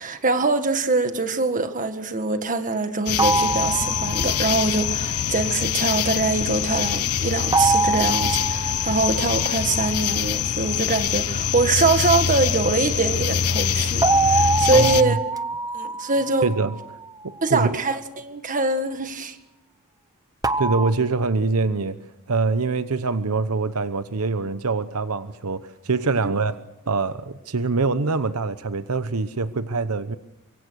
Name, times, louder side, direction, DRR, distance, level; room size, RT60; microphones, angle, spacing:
voice 1, 0.0-15.2 15.7-16.5 17.4-19.4 26.2-26.3, right 3 dB, 35° right, 1.7 m, -23 dB
sound 1, 3.1-15.0, left 8 dB, 85° left, 0.8 m, -24 dB
sound 2, 3.2-4.7 7.5-10.0 14.0-17.2 20.4-20.9, right 3 dB, 15° right, 0.8 m, -24 dB
voice 2, 14.7-15.2 16.4-16.8 17.2-17.8 20.6-22.0 22.3-26.6 26.9-30.2, right 3 dB, 80° right, 0.9 m, -24 dB
25.0 x 24.0 x 6.4 m
head